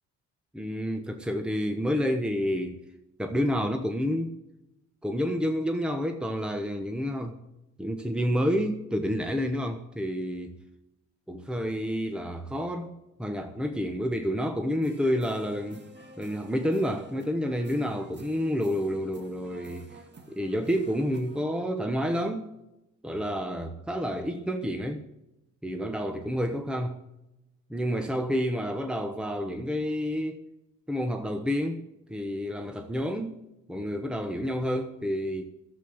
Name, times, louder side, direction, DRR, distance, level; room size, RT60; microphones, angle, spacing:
voice 1, 0.5-2.8 3.2-4.3 5.0-7.4 7.8-10.6 11.3-12.9 13.2-15.8 16.2-20.0 20.3-22.5 23.0-25.0 25.6-27.0 27.7-30.4 30.9-31.8 32.1-33.4 33.7-35.4, equal, 5° right, 1.1 m, -29 dB
sound 1, 14.8-21.5, right 2 dB, 35° right, 2.3 m, -50 dB
12.0 x 8.1 x 8.0 m
cardioid pair, 90°, 30 cm